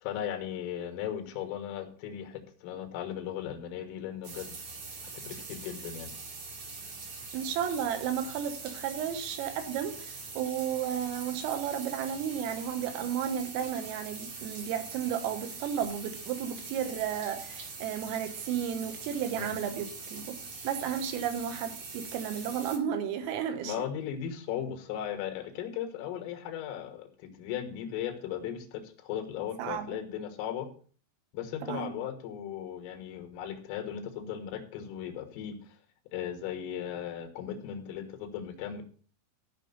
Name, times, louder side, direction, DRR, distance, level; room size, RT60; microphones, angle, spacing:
voice 1, 0.0-4.6 5.1-6.1 19.3-19.6 23.6-30.7 31.3-35.8 36.1-38.8, left 9 dB, 85° left, 7 dB, 3.9 m, -37 dB
sound 1, 4.2-22.8, right 4 dB, 50° right, 2.0 m, -43 dB
voice 2, 7.3-20.4 20.6-23.9 29.6-30.0 31.6-31.9, right 9 dB, 85° right, 7 dB, 3.8 m, -33 dB
13.5 x 5.6 x 5.4 m, 0.43 s
omnidirectional pair, 5.9 m